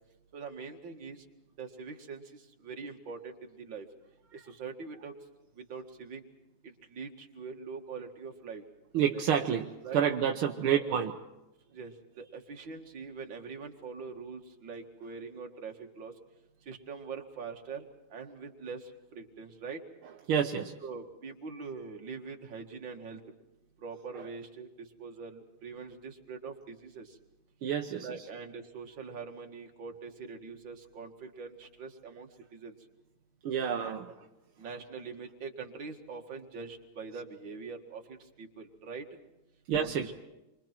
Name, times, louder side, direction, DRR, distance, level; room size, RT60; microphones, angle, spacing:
voice 1, 0.3-1.2 1.6-2.2 2.6-3.4 3.7-3.9 4.3-5.1 5.7-6.2 6.9-8.6 9.1-9.2 9.8-10.0 10.6-11.0 11.7-16.1 16.7-18.8 19.1-19.8 20.8-23.2 23.8-24.7 25.0-27.1 28.0-32.7 33.8-34.0 34.6-39.0 39.8-40.2, right 5 dB, 65° right, 2 dB, 2.7 m, -43 dB
voice 2, 8.9-11.1 20.3-20.8 27.6-28.1 33.4-34.1 39.7-40.2, right 8 dB, 80° right, 3 dB, 1.9 m, -29 dB
29.0 x 24.5 x 4.5 m, 0.99 s
omnidirectional pair, 2.3 m